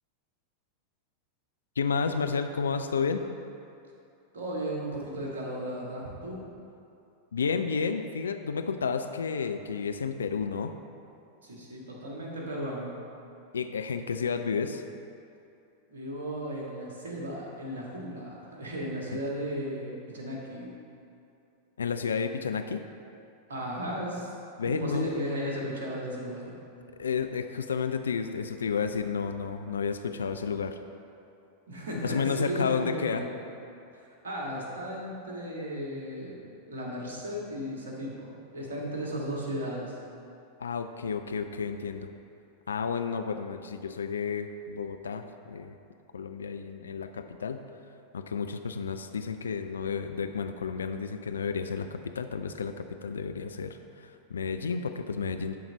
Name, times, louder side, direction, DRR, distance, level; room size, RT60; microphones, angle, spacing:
voice 1, 1.8-3.2 7.3-10.7 13.5-14.8 19.1-19.2 21.8-22.8 24.6-25.1 27.0-30.8 32.0-33.3 40.6-42.1 42.7-45.8 46.1-47.6 48.1-55.7, left 5 dB, 70° left, 8 dB, 0.3 m, -31 dB
voice 2, 4.3-6.4 11.4-12.9 15.9-20.8 23.5-24.3 24.6-26.6 31.7-33.3 33.9-40.0, equal, 65° right, -3 dB, 1.6 m, -35 dB
11.5 x 3.9 x 4.4 m, 2.7 s
figure-of-eight pair, 90°, 0 cm